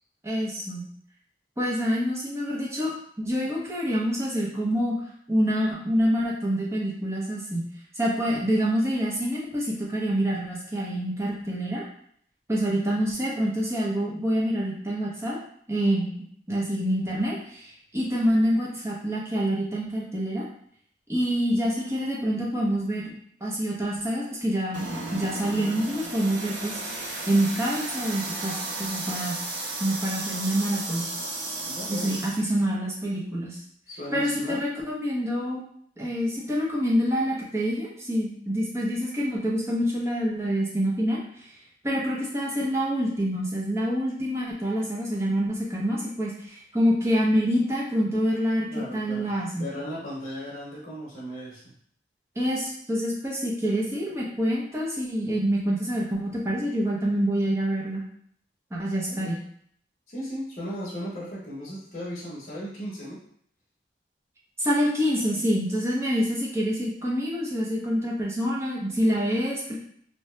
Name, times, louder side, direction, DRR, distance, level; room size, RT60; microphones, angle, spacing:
voice 1, 0.2-0.8 1.6-2.9 3.2-4.9 5.3-7.6 8.0-11.8 12.5-15.4 15.7-16.1 16.5-20.5 21.1-23.0 23.4-29.4 29.8-31.1 31.9-33.6 34.1-35.6 36.0-41.5 41.8-48.7 48.9-49.6 52.4-58.0 58.7-59.4 64.6-69.7, equal, 15° right, -5 dB, 0.6 m, -26 dB
sound 1, 24.7-32.4, right 2 dB, 85° right, 0.6 m, -34 dB
voice 2, 31.7-32.2 33.9-34.6 48.7-51.7 59.1-59.4 60.1-63.2, equal, 40° left, -7 dB, 0.8 m, -36 dB
2.7 x 2.2 x 3.1 m, 0.65 s
head